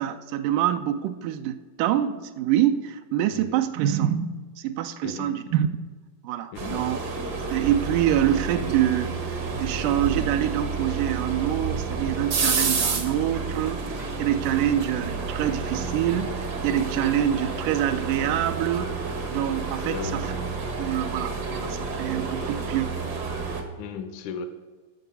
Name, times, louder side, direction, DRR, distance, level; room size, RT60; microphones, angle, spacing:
voice 1, 0.0-5.7 6.2-7.0 7.5-18.9 19.3-20.3 20.8-23.0, right 11 dB, 85° right, 8 dB, 2.1 m, -26 dB
voice 2, 5.0-5.5 6.5-6.9 19.8-20.3 23.8-24.5, left 6 dB, 75° left, 9 dB, 2.0 m, -36 dB
sound 1, 6.5-23.6, right 4 dB, 60° right, 1.0 m, -30 dB
12.5 x 6.7 x 5.5 m, 1.4 s
omnidirectional pair, 3.7 m